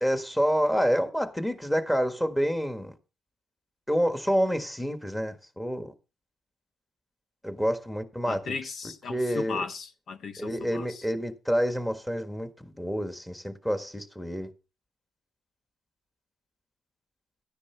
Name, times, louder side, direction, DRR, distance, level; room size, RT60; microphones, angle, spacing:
voice 1, 0.0-2.9 3.9-5.9 7.4-8.6 9.1-9.6 10.4-14.5, equal, 5° left, 1.6 m, -28 dB
voice 2, 8.2-11.0, left 5 dB, 60° left, 1.1 m, -37 dB
13.5 x 9.8 x 3.4 m
cardioid pair, 90°, 0 cm